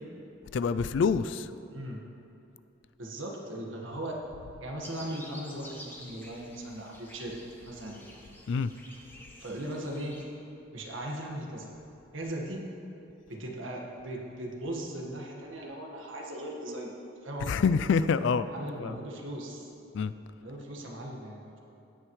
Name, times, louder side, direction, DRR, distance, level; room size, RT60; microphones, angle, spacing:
voice 1, 0.5-1.5 8.5-8.7 17.4-18.5 18.8-19.0 19.9-20.1, left 5 dB, 65° left, 14 dB, 0.3 m, -26 dB
voice 2, 1.7-2.0 3.0-4.2 4.6-8.1 9.4-10.2 10.7-11.7 12.1-12.6 13.3-17.0 17.2-17.6 18.3-19.7 20.4-21.6, right 1 dB, 75° right, 0 dB, 1.6 m, -38 dB
sound 1, 4.8-10.2, left 1 dB, 10° left, 1.2 m, -50 dB
17.0 x 8.9 x 3.2 m, 2.8 s
head